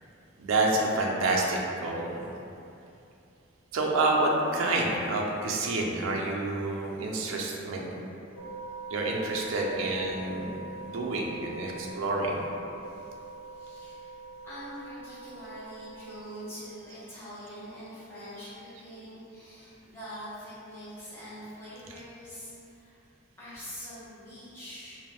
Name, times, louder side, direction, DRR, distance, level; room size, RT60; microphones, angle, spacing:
voice 1, 0.4-2.3 3.7-7.9 8.9-12.4 21.9-22.0, right 2 dB, 80° right, -1 dB, 0.4 m, -28 dB
sound 1, 8.4-16.2, right 3 dB, 85° left, 0.6 m, -43 dB
voice 2, 12.8-13.1 13.5-14.2 14.4-23.0 23.4-25.0, equal, 10° left, -13 dB, 0.6 m, -44 dB
2.3 x 2.0 x 3.4 m, 2.7 s
head